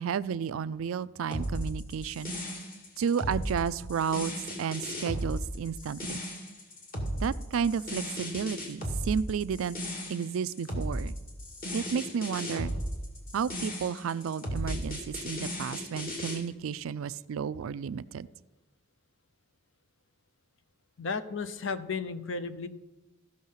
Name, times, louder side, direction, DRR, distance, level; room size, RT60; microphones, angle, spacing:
voice 1, 0.0-2.3 3.0-4.3 4.6-6.2 7.2-9.8 10.1-11.2 11.7-12.7 13.3-18.3, right 7 dB, 90° right, 17 dB, 0.4 m, -32 dB
sound 1, 1.3-16.4, equal, 45° left, 2.2 m, -35 dB
voice 2, 21.0-22.7, left 4 dB, 70° left, 12 dB, 0.7 m, -34 dB
15.0 x 6.4 x 5.6 m, 1.1 s
head